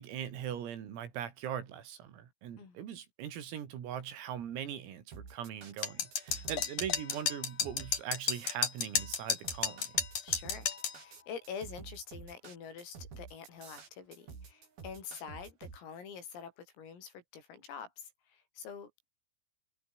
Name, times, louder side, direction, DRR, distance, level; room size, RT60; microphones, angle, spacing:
voice 1, 0.0-9.9, right 9 dB, 90° right, 6.1 m, -41 dB
sound 1, 5.1-15.8, right 5 dB, 50° right, 7.0 m, -49 dB
sound 2, 5.8-11.0, left 7 dB, 45° left, 3.5 m, -32 dB
voice 2, 10.2-19.1, left 6 dB, 80° left, 8.3 m, -46 dB
omnidirectional pair, 5.9 m